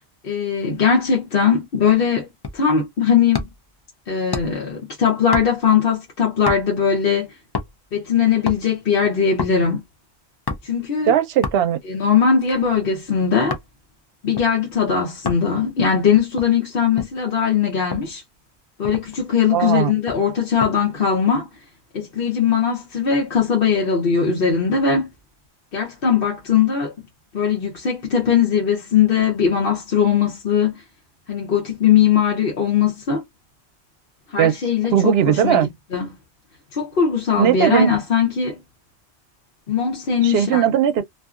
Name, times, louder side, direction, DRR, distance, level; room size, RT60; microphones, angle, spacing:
voice 1, 0.2-2.3 2.5-3.5 4.1-7.3 7.9-9.8 10.6-11.1 11.9-13.6 14.2-18.2 18.8-21.5 21.9-25.1 25.7-26.9 27.3-30.8 31.3-33.2 34.3-36.1 36.7-38.6 39.7-40.6, left 7 dB, 60° left, 1.0 m, -20 dB
sound 1, 2.4-2.7 3.3-3.7 4.3-4.7 5.3-5.8 6.5-6.8 7.5-7.9 8.3-8.7 9.4-9.6 10.5-10.8 11.4-11.8 12.4-13.7 14.4-14.5 15.2-15.5 16.1-17.2 17.9-18.1 18.5-18.6 18.8-19.3 20.1-20.8 21.1-21.4, left 4 dB, 35° left, 0.4 m, -30 dB
voice 2, 11.1-11.8 19.5-19.9 34.4-34.6 34.9-35.7 37.4-37.9 40.2-41.0, right 9 dB, 70° right, 0.8 m, -18 dB
2.6 x 2.4 x 2.4 m
omnidirectional pair, 1.1 m